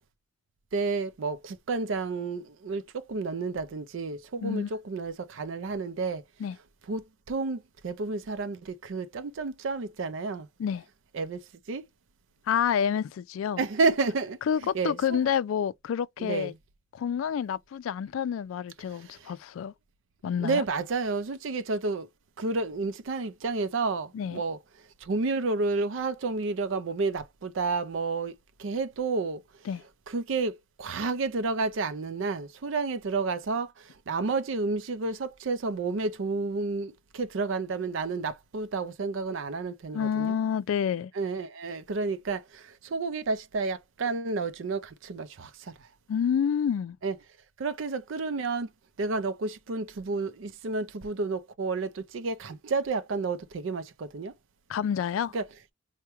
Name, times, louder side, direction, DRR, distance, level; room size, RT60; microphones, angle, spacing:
voice 1, 0.7-6.2 6.9-10.5 11.1-11.4 11.7-11.8 13.6-14.4 14.7-15.2 16.2-16.5 20.4-22.1 22.4-24.6 25.1-28.3 28.6-29.4 30.1-33.7 34.1-40.4 41.2-42.4 42.9-45.5 47.0-47.2 47.6-48.7 49.0-54.3 55.3-55.4, right 3 dB, 70° right, 0.5 m, -30 dB
voice 2, 12.5-13.6 14.5-16.5 16.9-19.7 20.2-20.6 24.1-24.4 29.7-29.8 39.9-41.1 46.1-47.0 54.7-55.4, left 8 dB, 85° left, 0.3 m, -28 dB
4.5 x 2.1 x 2.9 m
head